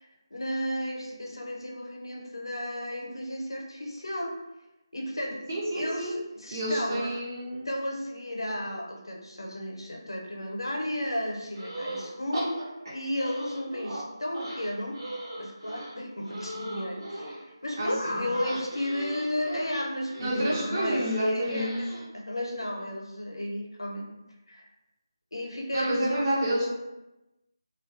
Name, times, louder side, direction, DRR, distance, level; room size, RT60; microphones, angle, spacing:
voice 1, 0.0-4.3 4.9-5.4 5.7-7.1 7.6-12.6 12.9-15.0 15.4-24.1 24.5-24.6 25.3-26.5, left 1 dB, 85° left, 0 dB, 0.6 m, -33 dB
voice 2, 5.5-6.2 6.5-7.7 17.8-18.2 20.2-21.8 25.7-26.7, right 1 dB, 35° right, -4 dB, 0.6 m, -29 dB
sound 1, 11.5-12.1 12.3-14.0 14.3-17.4 18.3-22.0, right 1 dB, 75° right, 1.1 m, -38 dB
2.3 x 2.2 x 2.5 m, 0.99 s
figure-of-eight pair, 160°, 2 cm